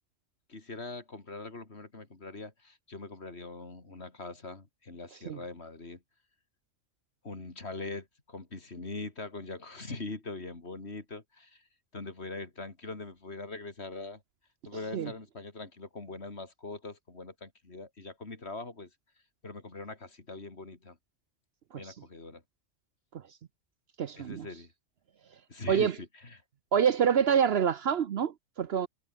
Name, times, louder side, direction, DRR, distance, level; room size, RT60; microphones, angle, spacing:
voice 1, 0.5-6.0 7.2-11.6 11.9-14.2 14.6-18.9 19.4-21.0 21.7-22.4 24.2-24.7 25.5-26.4, left 3 dB, 55° left, 3.3 m, -42 dB
voice 2, 24.0-24.5 25.7-25.9 26.7-28.9, right 8 dB, 60° right, 0.9 m, -27 dB
omnidirectional pair, 1.3 m